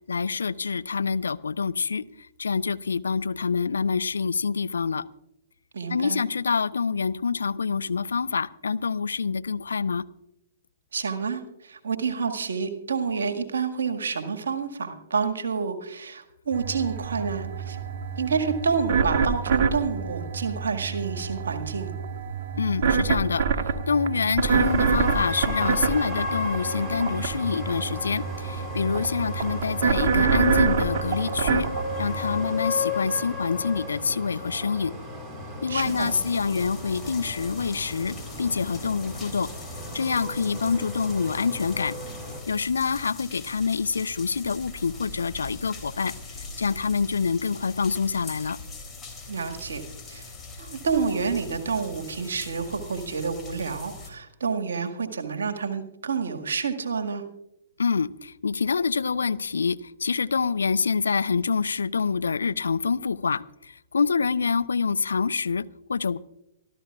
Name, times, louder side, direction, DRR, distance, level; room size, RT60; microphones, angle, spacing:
voice 1, 0.1-2.0 2.4-5.1 5.9-10.0 22.6-23.4 23.9-31.7 32.0-34.9 35.6-39.5 39.9-42.0 42.5-46.1 46.6-48.6 57.8-66.2, left 5 dB, 65° left, 15 dB, 0.5 m, -26 dB
voice 2, 5.7-6.2 10.9-17.8 18.2-21.9 35.7-36.2 49.3-49.8 50.1-50.3 50.6-57.2, right 5 dB, 65° right, 5 dB, 1.9 m, -29 dB
sound 1, 16.5-32.4, right 6 dB, 45° right, 1.5 m, -27 dB
sound 2, 24.4-42.4, left 3 dB, 5° right, 4.5 m, -35 dB
sound 3, 35.8-54.1, left 3 dB, 15° left, 3.4 m, -42 dB
26.0 x 13.5 x 2.4 m, 0.85 s
figure-of-eight pair, 115°, 0 cm